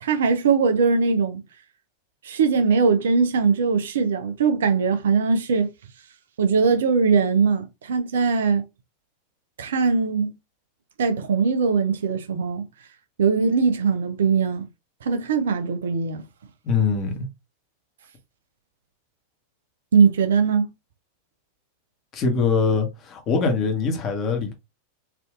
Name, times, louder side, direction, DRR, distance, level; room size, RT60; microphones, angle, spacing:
voice 1, 0.0-1.4 2.2-5.7 6.4-8.6 9.6-10.3 11.0-12.7 13.2-14.7 15.0-16.2 19.9-20.7, right 5 dB, 60° right, 0.5 m, -21 dB
voice 2, 16.6-17.3 22.1-24.5, left 5 dB, 35° left, 1.0 m, -23 dB
3.4 x 2.6 x 2.4 m
figure-of-eight pair, 90°, 0 cm